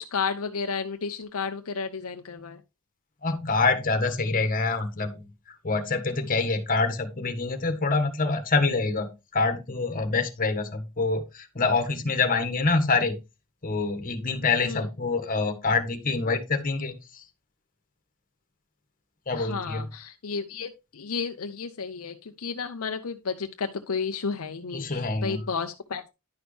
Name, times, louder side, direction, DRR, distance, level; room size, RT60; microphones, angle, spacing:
voice 1, 0.0-2.6 14.6-14.9 19.3-26.1, left 5 dB, 70° left, 6 dB, 0.7 m, -32 dB
voice 2, 3.2-5.2 5.6-13.2 13.6-17.2 19.3-19.8 24.7-25.4, left 3 dB, 40° left, 7 dB, 1.5 m, -26 dB
10.5 x 6.2 x 3.3 m, 0.25 s
head